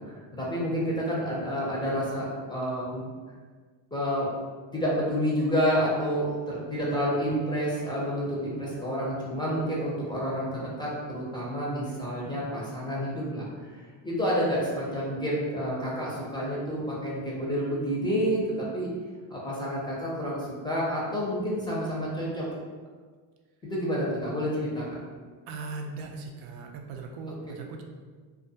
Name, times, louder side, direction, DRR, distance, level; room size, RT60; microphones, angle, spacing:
voice 1, 0.0-3.0 3.9-4.3 4.7-13.5 14.0-18.9 19.3-22.5 23.6-24.9, equal, 10° left, -5 dB, 0.4 m, -29 dB
voice 2, 6.7-7.1 25.5-27.8, right 3 dB, 85° right, 2 dB, 0.6 m, -39 dB
2.3 x 2.3 x 2.7 m, 1.5 s
cardioid pair, 110°, 48 cm